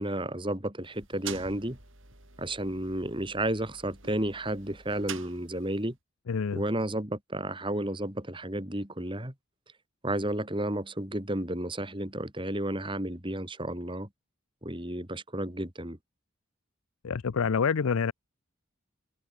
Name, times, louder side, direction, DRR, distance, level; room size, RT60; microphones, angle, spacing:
voice 1, 0.0-1.8 2.4-5.9 6.5-9.3 10.0-14.1 14.6-16.0, right 1 dB, 25° right, 3.1 m, -32 dB
sound 1, 0.8-5.9, right 7 dB, 65° right, 7.0 m, -46 dB
voice 2, 6.3-6.6 17.0-18.1, left 6 dB, 80° left, 0.5 m, -27 dB
head